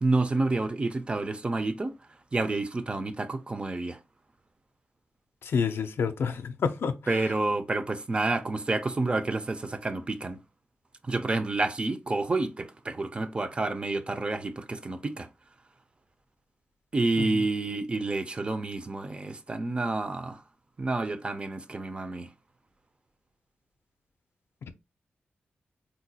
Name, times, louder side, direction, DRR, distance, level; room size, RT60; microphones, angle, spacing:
voice 1, 0.0-1.9 2.3-4.0 7.1-10.4 11.1-15.3 16.9-20.4 20.8-22.3, right 2 dB, 25° right, 0.4 m, -29 dB
voice 2, 5.5-7.0, left 6 dB, 75° left, 0.4 m, -28 dB
3.8 x 2.1 x 2.7 m
wide cardioid pair, 130°, 4 cm